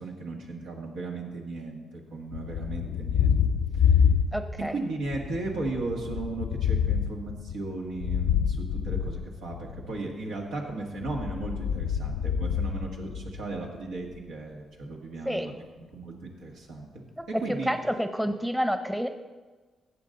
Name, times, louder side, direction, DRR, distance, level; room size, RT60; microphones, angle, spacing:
voice 1, 0.0-3.4 3.7-4.0 4.6-17.0 17.3-17.7, right 3 dB, 85° right, -1 dB, 1.8 m, -36 dB
Thunder, 2.3-4.7 5.1-9.9 10.9-13.6, left 7 dB, 85° left, 0.4 m, -27 dB
voice 2, 4.3-4.7 15.2-15.5 17.2-17.3 17.7-19.1, equal, 5° right, 8 dB, 0.9 m, -29 dB
14.5 x 8.2 x 3.9 m, 1.3 s
supercardioid pair, 60°, 0 cm